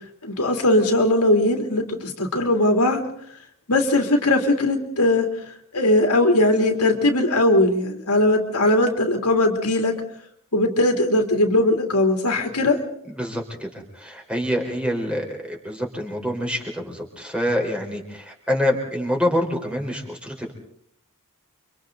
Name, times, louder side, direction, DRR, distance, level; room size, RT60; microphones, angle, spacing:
voice 1, 0.2-3.0 3.7-5.3 5.7-10.0 10.5-12.8, left 1 dB, 90° left, 4 dB, 3.1 m, -19 dB
voice 2, 13.2-20.5, equal, 5° right, 1 dB, 4.3 m, -26 dB
30.0 x 25.0 x 4.0 m, 0.66 s
head